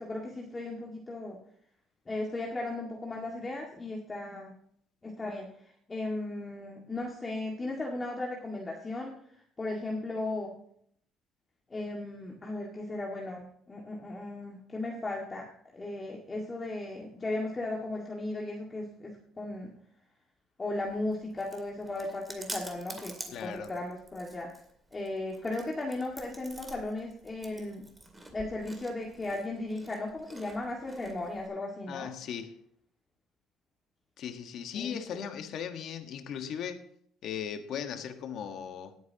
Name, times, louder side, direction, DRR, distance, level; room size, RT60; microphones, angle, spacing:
voice 1, 0.0-1.4 2.1-4.5 5.0-5.5 5.9-9.1 9.6-10.5 11.7-15.5 15.7-19.7 20.6-24.5 24.9-27.9 28.3-32.1 34.7-35.2, left 2 dB, 20° left, 2.0 m, -36 dB
Chewing mastication, 20.8-31.5, right 2 dB, 10° right, 2.4 m, -48 dB
voice 2, 23.3-23.7 31.9-32.6 34.2-36.9 37.2-38.9, left 8 dB, 55° left, 1.4 m, -38 dB
19.0 x 9.4 x 2.9 m
cardioid pair, 130°, 0 cm